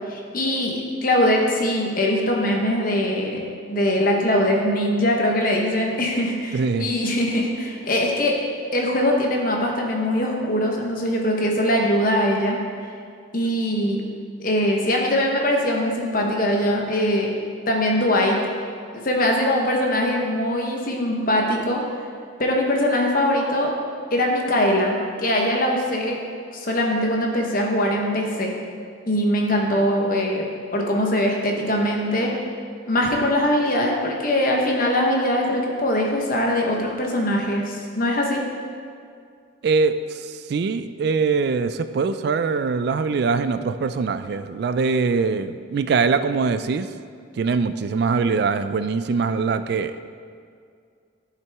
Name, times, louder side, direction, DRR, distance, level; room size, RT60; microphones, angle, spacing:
voice 1, 0.1-8.4 8.7-12.6 13.3-14.0 14.4-17.3 17.7-18.4 18.9-21.8 22.4-23.7 24.1-26.2 26.5-28.5 29.1-30.5 30.7-32.3 32.9-38.4, left 1 dB, 45° left, 0 dB, 1.0 m, -22 dB
voice 2, 6.5-6.9 39.6-46.9 47.4-50.0, right 4 dB, 55° right, 12 dB, 0.3 m, -22 dB
10.5 x 5.8 x 3.5 m, 2.2 s
head